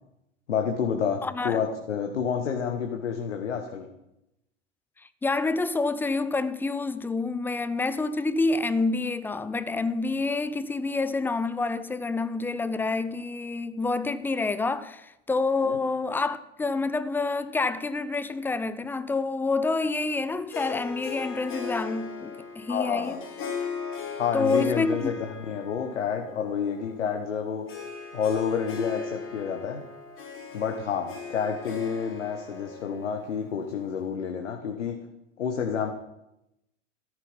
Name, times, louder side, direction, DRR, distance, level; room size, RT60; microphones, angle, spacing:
voice 1, 0.5-3.9 15.6-15.8 22.7-23.2 24.1-27.7 28.1-29.8 30.5-35.0 35.4-35.9, left 7 dB, 65° left, 1.5 m, -29 dB
voice 2, 1.2-1.6 5.2-23.2 24.3-25.0, left 3 dB, 5° left, 0.4 m, -28 dB
Harp, 20.5-34.1, left 5 dB, 35° left, 3.2 m, -39 dB
14.0 x 12.5 x 5.4 m
figure-of-eight pair, 85°, 37 cm